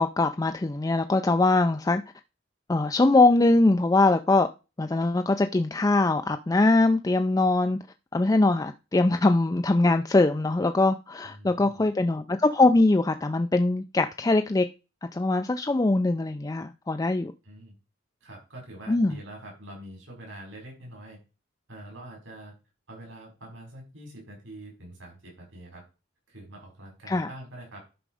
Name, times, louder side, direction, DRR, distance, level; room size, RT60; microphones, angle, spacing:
voice 1, 0.0-2.0 2.7-4.5 4.8-7.8 8.1-14.7 15.1-17.3 18.9-19.1 27.1-27.3, left 2 dB, 20° left, 0.4 m, -22 dB
voice 2, 11.2-11.9 17.4-17.7 18.2-21.2 21.7-22.5 22.9-25.8 26.3-27.8, right 1 dB, 75° right, 5.5 m, -45 dB
11.0 x 5.1 x 4.9 m
head